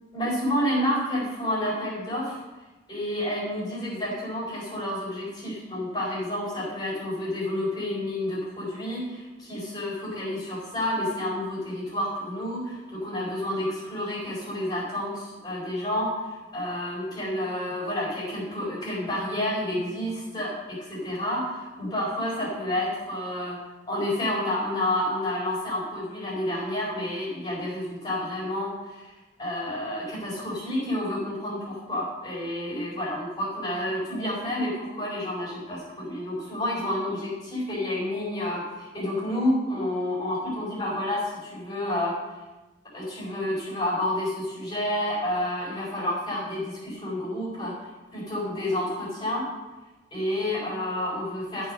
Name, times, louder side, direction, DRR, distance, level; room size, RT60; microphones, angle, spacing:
voice 1, 0.1-2.4 2.9-23.6 23.9-29.1 29.4-42.2 42.9-47.7 48.1-49.5 50.1-51.7, left 1 dB, 20° left, -7 dB, 4.2 m, -29 dB
13.0 x 4.8 x 6.4 m, 1.1 s
head